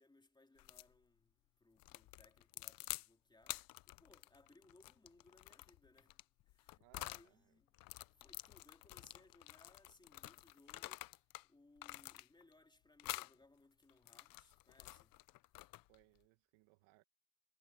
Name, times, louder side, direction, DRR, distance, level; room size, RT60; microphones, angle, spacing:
voice 1, 0.0-1.3 1.6-6.2 6.5-7.7 8.0-11.2 11.5-15.2, left 2 dB, 10° left, 3.2 m, -68 dB
sound 1, 0.6-0.9 1.8-3.1 3.4-7.3 7.7-11.5 11.8-12.5 13.0-13.3 13.9-16.0, left 18 dB, 45° left, 0.8 m, -49 dB
voice 2, 6.7-7.5 15.9-17.0, right 23 dB, 65° right, 2.0 m, -68 dB
supercardioid pair, 110°, 49 cm